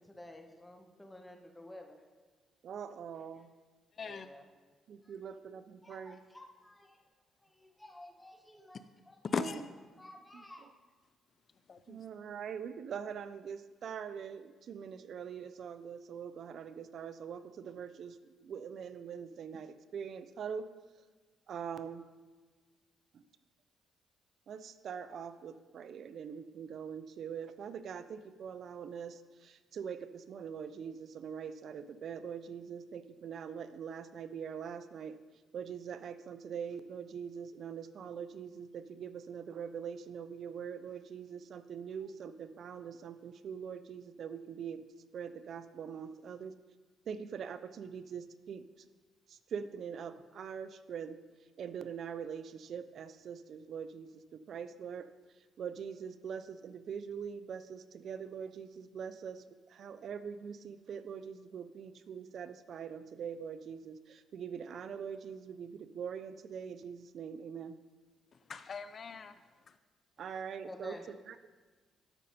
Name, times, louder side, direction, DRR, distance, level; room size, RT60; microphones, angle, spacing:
voice 1, 0.0-2.1 4.0-4.5 5.0-5.1 5.8-7.0 7.4-9.2 10.0-10.7 70.6-71.0, left 1 dB, 10° left, 3 dB, 1.2 m, -52 dB
voice 2, 2.6-3.5 4.9-6.2 9.3-9.5 10.3-10.4 11.9-20.7 21.5-22.1 23.1-23.2 24.5-35.2 35.5-44.9 45.1-46.5 47.1-48.6 49.3-51.2 51.6-55.1 55.6-67.8 70.2-71.4, right 7 dB, 60° right, 12 dB, 0.4 m, -43 dB
voice 3, 3.9-4.3 9.3-9.6 11.7-12.0 68.3-69.4 69.7-69.8, left 5 dB, 45° left, 12 dB, 0.4 m, -39 dB
12.5 x 5.5 x 4.2 m, 1.4 s
cardioid pair, 90°, 0 cm